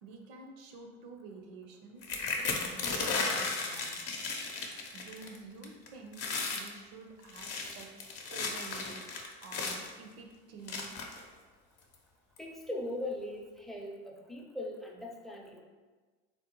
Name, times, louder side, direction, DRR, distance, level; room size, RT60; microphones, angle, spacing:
voice 1, 0.0-2.2 2.5-4.0 4.9-7.5 7.7-9.2 9.4-10.9, right 4 dB, 80° right, 2 dB, 0.6 m, -49 dB
sound 1, 2.0-5.4 5.6-5.9 6.1-6.7 7.2-9.9 10.7-11.2 11.9-12.0 12.4-12.6, left 4 dB, 55° left, 0.6 m, -35 dB
voice 2, 12.4-15.6, left 1 dB, ahead, -1 dB, 0.4 m, -40 dB
3.7 x 2.1 x 2.9 m, 1.3 s
supercardioid pair, 85°, 30 cm